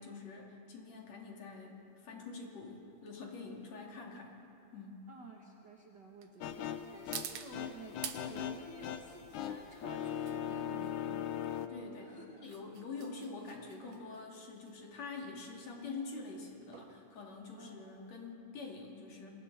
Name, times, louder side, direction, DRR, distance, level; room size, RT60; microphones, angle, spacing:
voice 1, 0.0-4.4 4.7-5.1 11.7-19.3, left 4 dB, 60° left, -1 dB, 3.9 m, -46 dB
sound 1, 1.5-18.2, right 9 dB, 85° right, 2.7 m, -51 dB
voice 2, 5.1-11.5 12.0-12.4 17.6-17.9, right 4 dB, 45° right, 1 dB, 1.5 m, -53 dB
sound 2, 6.4-11.7, left 10 dB, 75° left, 2.3 m, -40 dB
28.0 x 24.5 x 4.3 m, 2.8 s
omnidirectional pair, 3.6 m